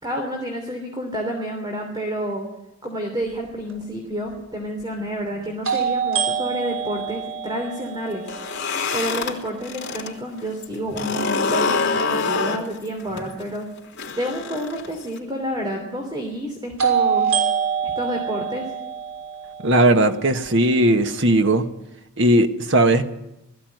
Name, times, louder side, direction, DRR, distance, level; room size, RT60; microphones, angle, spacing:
voice 1, 0.0-2.5 2.8-8.3 8.9-13.7 14.2-17.3 17.8-18.7, equal, 20° right, 2 dB, 3.2 m, -29 dB
sound 1, 3.7-3.8 5.6-9.6 16.8-20.8, right 7 dB, 80° right, 6.3 m, -26 dB
sound 2, 8.2-10.1 10.4-15.2, left 4 dB, 55° left, 3.6 m, -26 dB
voice 2, 19.6-21.6 22.2-23.0, right 1 dB, 60° right, 7 dB, 1.5 m, -17 dB
19.5 x 15.5 x 9.3 m, 0.90 s
head